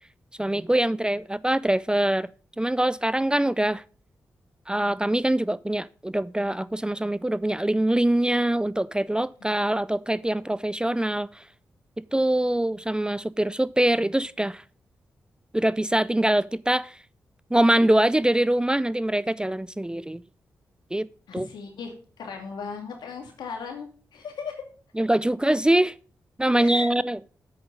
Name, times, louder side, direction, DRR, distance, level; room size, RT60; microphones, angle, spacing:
voice 1, 0.4-2.3 2.6-3.8 4.7-11.3 12.1-14.6 15.5-16.9 17.5-20.2 20.9-21.1 21.3-21.5 25.0-25.9 26.4-27.2, right 1 dB, 10° right, 0.4 m, -23 dB
voice 2, 21.3-24.6 26.5-26.9, left 5 dB, 80° left, 2.4 m, -37 dB
7.8 x 7.2 x 5.2 m
supercardioid pair, 40°, 7 cm